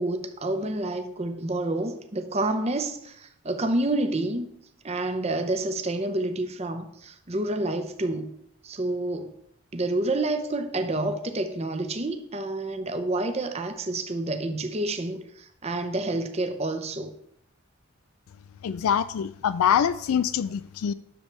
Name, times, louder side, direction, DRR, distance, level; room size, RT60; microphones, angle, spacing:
voice 1, 0.0-4.5 4.8-8.3 8.6-9.3 9.7-17.1, right 2 dB, 30° right, 0.7 m, -28 dB
voice 2, 18.6-20.9, left 8 dB, 75° left, 0.3 m, -24 dB
9.9 x 7.0 x 3.3 m
head